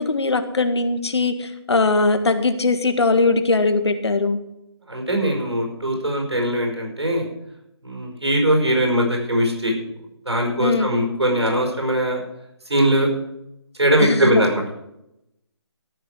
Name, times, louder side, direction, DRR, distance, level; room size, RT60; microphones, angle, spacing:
voice 1, 0.0-4.4 10.6-10.9 14.0-14.4, left 3 dB, 75° left, 8 dB, 1.8 m, -20 dB
voice 2, 4.9-7.3 7.8-9.8 10.3-12.2 12.7-13.1 13.8-14.6, right 1 dB, 90° right, 1 dB, 5.3 m, -20 dB
13.5 x 6.4 x 7.8 m, 0.84 s
figure-of-eight pair, 155°, 14 cm